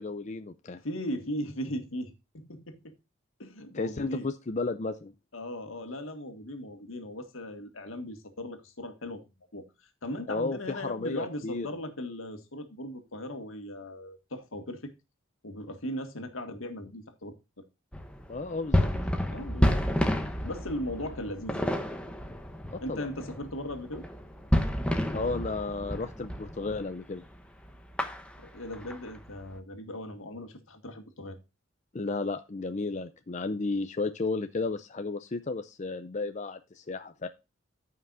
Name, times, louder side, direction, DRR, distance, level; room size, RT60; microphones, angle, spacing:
voice 1, 0.0-0.8 3.7-5.1 10.3-11.7 18.3-18.9 22.9-23.1 25.1-27.2 31.9-37.3, left 3 dB, 35° left, 0.5 m, -33 dB
voice 2, 0.8-3.0 3.4-4.3 5.3-9.3 9.5-9.6 10.0-14.9 15.4-17.6 19.3-19.9 20.4-21.7 22.8-24.1 28.4-31.4, left 1 dB, 75° left, 1.8 m, -38 dB
sound 1, 17.9-26.9 27.2-27.3 27.7-29.5, equal, 5° left, 1.0 m, -30 dB
14.0 x 5.8 x 2.6 m
head